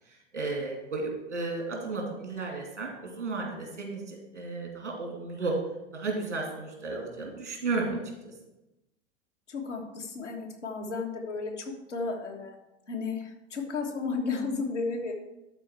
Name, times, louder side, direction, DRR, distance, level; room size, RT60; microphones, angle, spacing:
voice 1, 0.3-5.5 5.9-8.3, right 3 dB, 85° right, 0 dB, 2.6 m, -33 dB
voice 2, 9.5-12.6 12.9-15.1, left 4 dB, 85° left, 0 dB, 1.6 m, -33 dB
12.0 x 4.5 x 4.5 m, 0.96 s
figure-of-eight pair, 90°, 35 cm